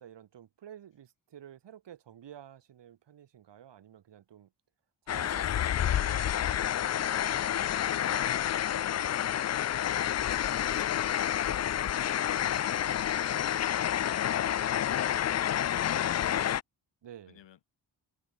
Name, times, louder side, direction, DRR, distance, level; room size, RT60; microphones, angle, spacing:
voice 1, 0.0-4.5 5.0-7.7 17.0-17.4, right 10 dB, 75° right, 4.7 m, -52 dB
sound 1, 5.1-16.6, left 10 dB, 40° left, 0.4 m, -29 dB
voice 2, 7.8-11.7 12.0-12.5 12.8-13.7 14.2-15.1 17.3-17.6, left 10 dB, 85° left, 5.2 m, -51 dB
cardioid pair, 115°, 43 cm